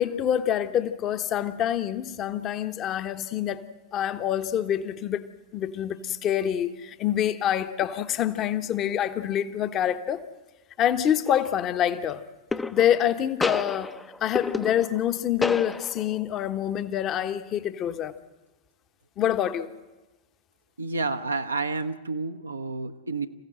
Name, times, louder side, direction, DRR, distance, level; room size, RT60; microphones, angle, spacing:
voice 1, 0.0-10.2 10.8-12.2 12.7-13.9 14.2-18.1 19.2-19.7, left 10 dB, 35° left, 1.2 m, -26 dB
sound 1, 11.3-11.6 12.5-13.1 13.4-15.1 15.4-16.2, left 3 dB, 10° left, 0.7 m, -31 dB
voice 2, 20.8-23.3, right 3 dB, 80° right, 0.9 m, -30 dB
27.5 x 15.5 x 7.8 m
figure-of-eight pair, 90°, 0 cm